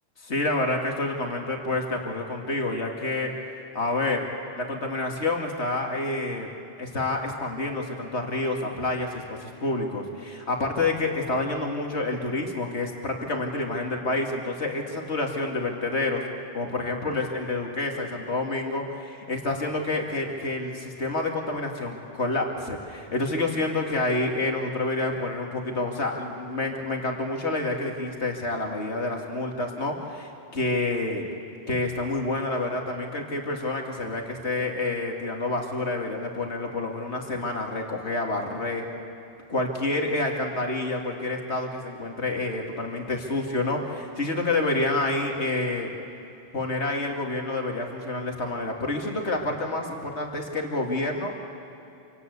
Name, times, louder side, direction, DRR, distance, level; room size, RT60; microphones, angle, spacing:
voice 1, 0.2-3.3 3.7-4.3 4.6-6.5 6.8-16.2 16.5-31.2 31.7-38.8 39.5-45.9 46.5-51.3, left 2 dB, 85° left, 2 dB, 2.7 m, -28 dB
28.0 x 18.0 x 8.3 m, 2.8 s
omnidirectional pair, 1.1 m